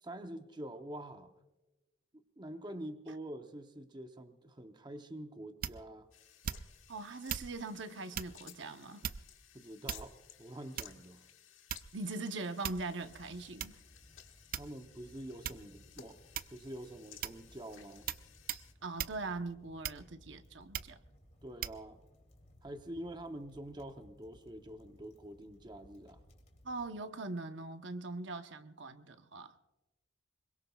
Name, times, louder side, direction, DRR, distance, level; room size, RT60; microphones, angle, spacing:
voice 1, 0.0-1.3 2.4-6.1 9.5-11.3 14.5-16.2 16.5-18.1 21.4-22.0 22.6-26.2, right 1 dB, 25° right, 0.7 m, -46 dB
sound 1, 5.6-6.0 6.4-6.9 7.3-7.5 8.1-8.4 9.0-9.4 9.9-10.3 10.8-11.1 11.7-12.1 12.6-13.0 13.6-13.8 14.5-15.0 15.4-15.7 16.3-16.7 17.2-17.5 18.1-18.2 18.5-18.7 19.0-19.2 19.8-20.2 20.7-21.0 21.6-21.8, right 9 dB, 45° right, 0.4 m, -39 dB
sound 2, 6.1-18.7, left 9 dB, 90° left, 1.5 m, -58 dB
voice 2, 6.9-9.0 11.9-13.7 18.8-21.0 26.6-29.5, right 3 dB, 70° right, 0.9 m, -41 dB
sound 3, 13.0-26.9, equal, 35° left, 2.5 m, -62 dB
25.5 x 23.0 x 2.3 m
head